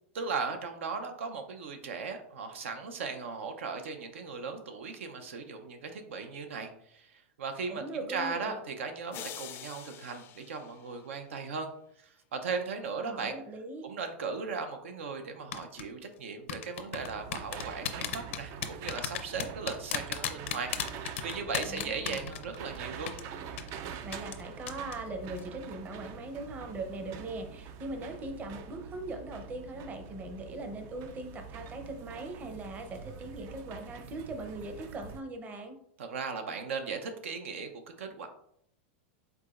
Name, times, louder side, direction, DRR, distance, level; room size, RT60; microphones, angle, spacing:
voice 1, 0.1-7.8 8.1-11.7 12.0-13.4 13.8-23.1 36.0-38.3, right 5 dB, 85° right, 6 dB, 0.6 m, -37 dB
voice 2, 7.7-8.5 12.8-13.9 21.7-22.3 23.7-35.8, right 2 dB, 25° right, 5 dB, 0.7 m, -40 dB
sound 1, 9.1-11.4, left 11 dB, 35° left, 0.4 m, -46 dB
sound 2, 15.5-15.8 16.5-22.8 23.1-23.2 23.6-23.7 24.1-24.4 24.7-25.0 25.3-25.4, left 10 dB, 80° left, 0.6 m, -34 dB
sound 3, 16.9-35.2, right 7 dB, 45° right, 0.4 m, -45 dB
4.7 x 3.9 x 2.4 m, 0.71 s
hypercardioid pair, 125°, 7 cm